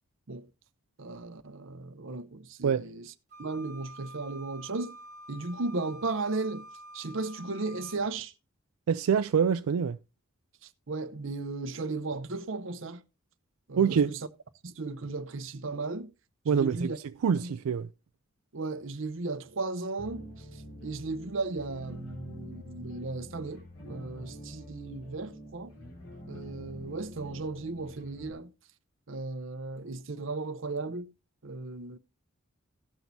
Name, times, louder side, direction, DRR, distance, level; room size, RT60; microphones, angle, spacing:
voice 1, 1.0-3.0 3.4-4.9 5.3-6.7 6.9-8.3 10.9-13.0 13.7-14.2 14.6-16.1 16.5-17.0 17.4-17.5 18.5-20.2 20.8-25.7 26.3-28.5 29.1-31.1 31.4-32.0, right 3 dB, 60° right, 0.7 m, -35 dB
Wind instrument woodwind instrument, 3.3-8.0, equal, 35° right, 1.6 m, -48 dB
voice 2, 8.9-10.0 13.8-14.2 16.5-17.9, right 7 dB, 85° right, 0.4 m, -26 dB
sound 1, 20.0-28.3, left 1 dB, 85° left, 3.0 m, -46 dB
17.0 x 6.1 x 2.7 m
head